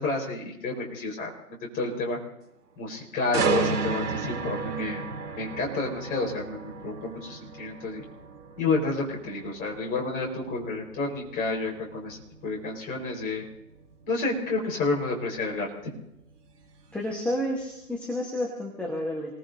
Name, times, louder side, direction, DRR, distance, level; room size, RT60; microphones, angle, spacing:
voice 1, 0.0-2.2 2.8-5.0 5.4-8.0 8.6-12.2 12.4-13.4 14.1-15.9, left 3 dB, 20° left, -1 dB, 4.6 m, -30 dB
sound 1, 3.3-17.2 17.6-17.9, right 4 dB, 70° right, 3.4 m, -34 dB
voice 2, 16.9-19.3, left 1 dB, 5° left, -2 dB, 1.2 m, -30 dB
28.5 x 19.0 x 2.7 m, 0.85 s
hypercardioid pair, 140°, 48 cm